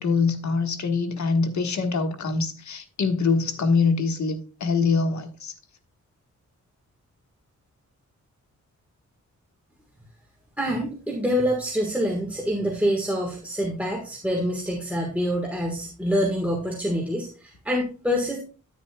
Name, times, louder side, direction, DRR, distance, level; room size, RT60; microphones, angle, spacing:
voice 1, 0.0-5.5, left 4 dB, 65° left, 1.4 m, -24 dB
voice 2, 10.6-18.4, equal, 5° right, 1.5 m, -26 dB
9.8 x 9.6 x 2.3 m
wide cardioid pair, 135°, 30 cm